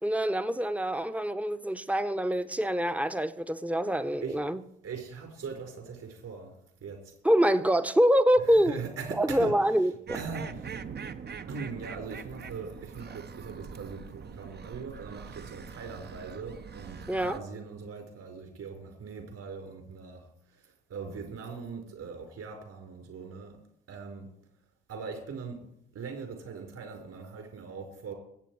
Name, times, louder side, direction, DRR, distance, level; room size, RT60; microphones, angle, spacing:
voice 1, 0.0-4.6 7.2-8.8 9.2-9.9 17.1-17.4, equal, 5° right, 11 dB, 1.0 m, -25 dB
voice 2, 4.8-7.1 8.4-9.5 10.1-10.8 11.5-23.6 23.9-24.3 24.9-25.7 25.9-28.1, right 5 dB, 55° right, 4 dB, 4.9 m, -41 dB
sound 1, 10.1-17.4, right 6 dB, 35° right, 1.0 m, -43 dB
21.5 x 8.5 x 4.8 m, 0.75 s
figure-of-eight pair, 50°, 30 cm